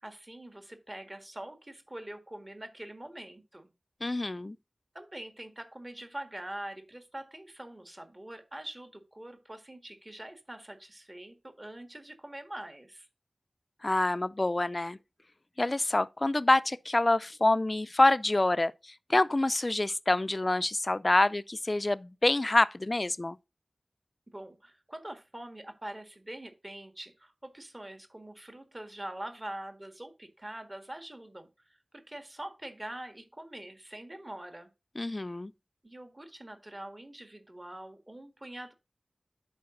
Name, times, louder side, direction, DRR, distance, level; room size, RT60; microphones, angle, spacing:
voice 1, 0.0-3.7 4.9-13.1 24.3-34.7 35.8-38.7, right 1 dB, 30° right, 1.6 m, -44 dB
voice 2, 4.0-4.6 13.8-15.0 15.6-23.4 35.0-35.5, left 2 dB, 35° left, 0.4 m, -26 dB
11.5 x 4.8 x 2.6 m
wide cardioid pair, 65°, 0 cm